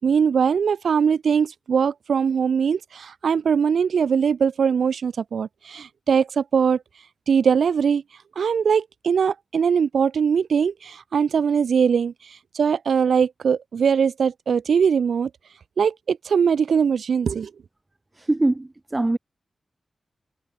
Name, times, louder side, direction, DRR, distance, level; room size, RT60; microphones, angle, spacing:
voice 1, 0.0-6.8 7.3-8.0 8.3-12.1 12.5-15.3 15.8-17.5, right 6 dB, 80° right, 6.7 m, -21 dB
voice 2, 18.2-19.2, right 2 dB, 25° right, 5.4 m, -23 dB
cardioid pair, 55°, 0 cm